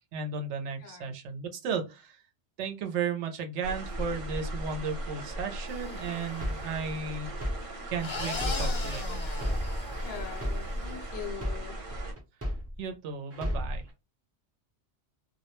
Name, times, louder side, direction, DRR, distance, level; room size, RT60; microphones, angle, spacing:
voice 1, 0.1-2.2 2.6-7.3 7.9-9.1 12.8-13.8, right 5 dB, 85° right, 0.9 m, -34 dB
voice 2, 0.8-1.1 10.0-11.8, left 8 dB, 70° left, 0.8 m, -42 dB
sound 1, 3.6-12.1, equal, 50° right, 0.9 m, -37 dB
sound 2, 5.7-6.4 8.0-10.6, left 3 dB, 40° left, 0.4 m, -38 dB
sound 3, 5.9-8.9 9.3-12.9 13.3-13.9, equal, 20° right, 0.4 m, -35 dB
2.2 x 2.1 x 2.9 m
omnidirectional pair, 1.2 m